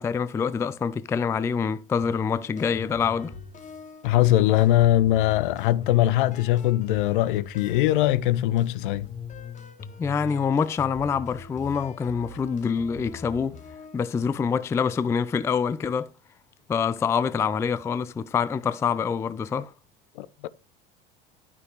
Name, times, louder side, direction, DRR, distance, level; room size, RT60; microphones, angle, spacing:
voice 1, 0.0-3.3 10.0-13.6 13.9-16.1 16.7-19.7, left 6 dB, 10° left, 0.3 m, -26 dB
sound 1, 2.0-14.0, left 4 dB, 25° left, 1.3 m, -42 dB
voice 2, 4.0-9.1 20.2-20.5, left 14 dB, 60° left, 0.6 m, -21 dB
11.5 x 6.0 x 3.1 m
figure-of-eight pair, 75°, 29 cm